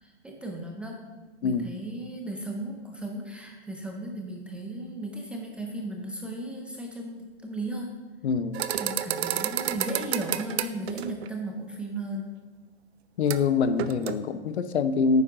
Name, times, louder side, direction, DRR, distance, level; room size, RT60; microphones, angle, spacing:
voice 1, 0.0-1.0 1.4-7.9 8.8-12.3 14.2-14.3, right 1 dB, 5° right, 1 dB, 0.4 m, -36 dB
voice 2, 8.2-8.6 13.2-15.2, left 5 dB, 75° left, 12 dB, 0.9 m, -25 dB
sound 1, 8.5-11.3 13.3-13.5 13.8-14.2, right 10 dB, 70° right, 0.7 m, -30 dB
11.0 x 9.2 x 3.8 m, 1.3 s
hypercardioid pair, 145°, 33 cm